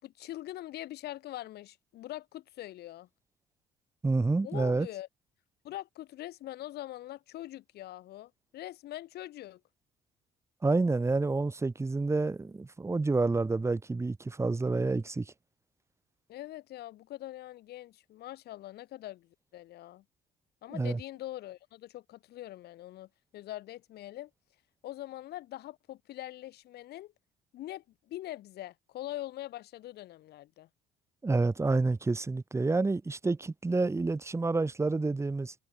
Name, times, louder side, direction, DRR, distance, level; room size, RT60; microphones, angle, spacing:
voice 1, 0.0-3.1 4.4-5.1 5.6-9.6 16.3-20.0 20.6-24.3 24.8-27.1 27.5-30.7, left 14 dB, 75° left, 5.7 m, -43 dB
voice 2, 4.0-4.9 10.6-15.3 20.7-21.0 31.2-35.5, right 3 dB, 15° right, 1.7 m, -28 dB
cardioid pair, 110°, 17 cm